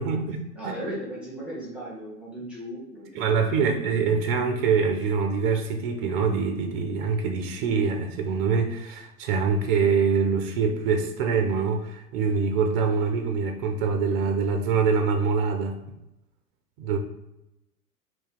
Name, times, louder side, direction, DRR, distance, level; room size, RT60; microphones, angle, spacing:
voice 1, 0.0-0.4 3.1-15.8 16.8-17.0, right 5 dB, 35° right, 4 dB, 0.4 m, -24 dB
voice 2, 0.6-3.8, right 1 dB, ahead, -7 dB, 1.0 m, -37 dB
2.7 x 2.7 x 3.5 m, 0.89 s
hypercardioid pair, 105°, 49 cm